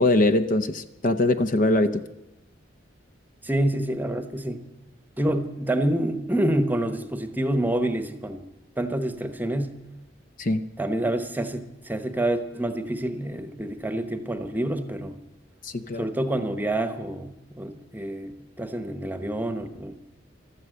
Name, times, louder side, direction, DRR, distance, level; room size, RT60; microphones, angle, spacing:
voice 1, 0.0-2.0 10.4-10.6 15.6-16.0, left 2 dB, 45° left, 10 dB, 0.7 m, -22 dB
voice 2, 3.4-4.6 5.2-8.4 8.8-9.8 10.8-15.2 16.0-19.9, right 1 dB, 10° right, 10 dB, 1.0 m, -27 dB
15.0 x 12.5 x 7.6 m, 0.93 s
head